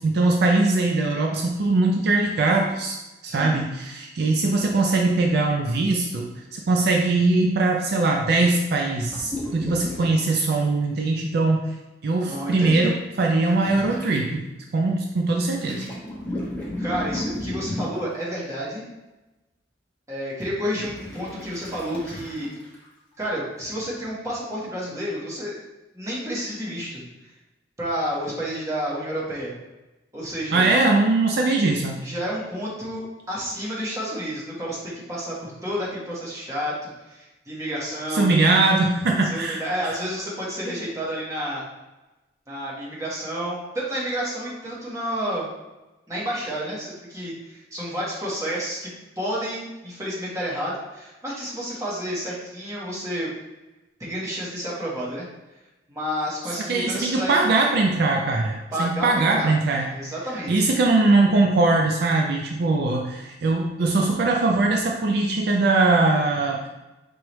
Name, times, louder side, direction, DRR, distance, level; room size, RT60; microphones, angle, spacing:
voice 1, 0.0-3.0 3.2-11.7 12.0-14.4 14.7-15.8 30.5-32.0 38.1-39.9 56.7-59.9 60.5-66.6, right 3 dB, 60° right, 1 dB, 0.4 m, -21 dB
sound 1, 9.1-10.1 10.5-10.6 13.4-14.1 15.6-18.1 20.4-22.9 23.2-23.3, left 1 dB, 10° left, 1.0 m, -33 dB
voice 2, 12.3-12.8 16.8-18.8 20.1-22.5 23.2-25.6 25.9-27.0 27.8-29.5 30.1-30.7 32.0-38.3 39.2-41.6 42.5-45.5 46.1-53.3 54.0-55.3 55.9-57.5 58.7-59.5 59.9-60.5, equal, 15° right, -6 dB, 1.2 m, -30 dB
4.7 x 3.2 x 3.0 m, 1.0 s
head